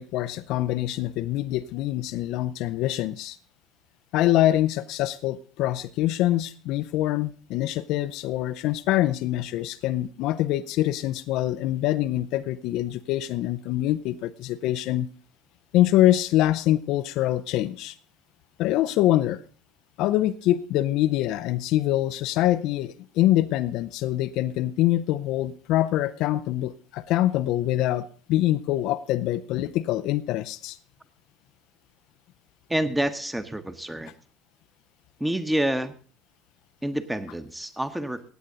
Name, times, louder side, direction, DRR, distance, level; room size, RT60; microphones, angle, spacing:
voice 1, 0.0-3.4 4.1-15.1 15.7-17.9 18.6-19.4 20.0-30.8, left 14 dB, 55° left, 12 dB, 0.5 m, -24 dB
voice 2, 32.7-34.1 35.2-35.9 36.8-38.3, right 1 dB, 5° right, 10 dB, 1.1 m, -28 dB
16.0 x 9.4 x 3.9 m, 0.40 s
figure-of-eight pair, 65°, 0 cm